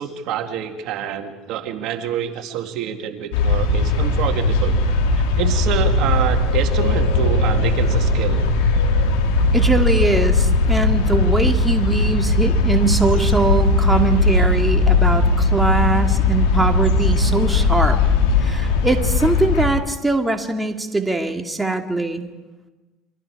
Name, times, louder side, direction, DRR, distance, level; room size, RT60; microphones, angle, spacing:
voice 1, 0.0-4.8 5.2-8.5, right 9 dB, 65° right, 6 dB, 2.1 m, -27 dB
sound 1, 3.3-19.7, left 2 dB, 85° left, 3.4 m, -18 dB
voice 2, 9.5-18.0 18.4-22.3, right 2 dB, 10° right, 4 dB, 2.2 m, -21 dB
28.5 x 24.0 x 4.8 m, 1.1 s
supercardioid pair, 90°, 0 cm